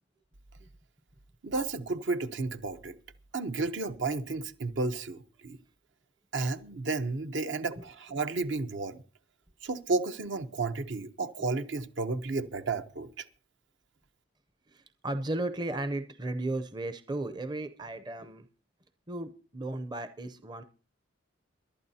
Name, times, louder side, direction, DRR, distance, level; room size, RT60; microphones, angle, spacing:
voice 1, 1.4-3.0 3.3-5.6 6.3-9.0 9.6-13.3, right 3 dB, 70° right, 0.8 m, -32 dB
voice 2, 14.7-18.4 19.1-20.6, right 2 dB, 20° right, 0.6 m, -35 dB
22.5 x 11.5 x 2.8 m
head